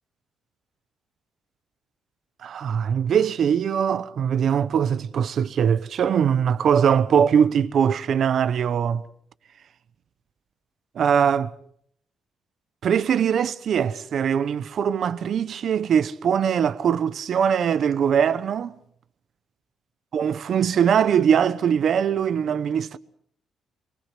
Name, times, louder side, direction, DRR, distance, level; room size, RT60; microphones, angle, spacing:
voice 1, 2.4-9.0 10.9-11.5 12.8-18.7 20.1-23.0, right 8 dB, 55° right, 1.0 m, -21 dB
24.5 x 23.0 x 6.0 m
cardioid pair, 130°, 0 cm